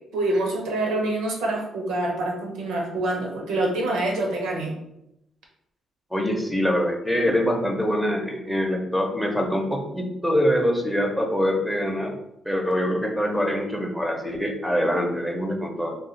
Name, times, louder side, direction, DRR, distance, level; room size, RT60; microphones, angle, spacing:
voice 1, 0.1-4.7, right 2 dB, 90° right, 1 dB, 0.7 m, -26 dB
voice 2, 6.1-12.2 12.4-16.0, equal, 5° left, 2 dB, 0.6 m, -24 dB
2.4 x 2.3 x 3.9 m, 0.81 s
cardioid pair, 90°, 0 cm